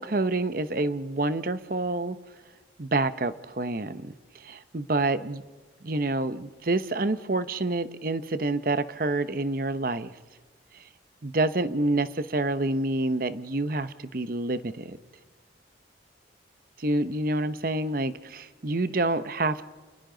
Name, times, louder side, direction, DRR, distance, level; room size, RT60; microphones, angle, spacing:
voice 1, 0.0-2.2 2.8-5.4 5.8-10.1 11.2-15.0 16.8-19.6, right 2 dB, 50° right, 13 dB, 0.9 m, -28 dB
29.5 x 28.0 x 3.9 m, 1.3 s
head